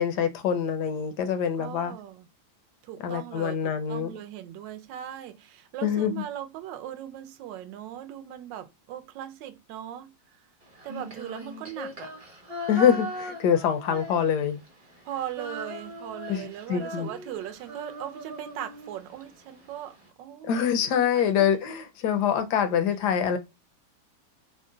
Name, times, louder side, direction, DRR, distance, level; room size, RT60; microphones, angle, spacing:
voice 1, 0.0-1.9 3.0-4.1 5.8-6.1 12.7-14.6 16.3-17.1 20.4-23.4, left 8 dB, 70° left, 1.1 m, -25 dB
voice 2, 1.6-2.3 2.8-10.1 10.8-12.1 15.0-20.7 21.1-21.3, right 11 dB, 75° right, 1.2 m, -39 dB
Female singing, 10.8-14.7 14.9-19.2, equal, 30° right, 0.6 m, -39 dB
3.7 x 2.1 x 3.7 m
omnidirectional pair, 2.1 m